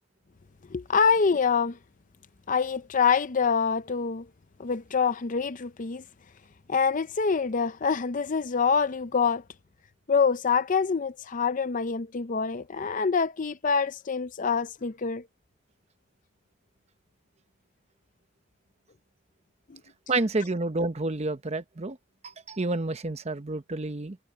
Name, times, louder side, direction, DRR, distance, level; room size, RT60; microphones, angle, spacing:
voice 1, 0.7-1.8 2.5-4.3 4.6-6.0 6.7-9.4 10.1-15.2 19.7-19.8, left 5 dB, 40° left, 0.5 m, -25 dB
voice 2, 20.1-22.0 22.2-24.2, right 2 dB, 30° right, 0.8 m, -29 dB
head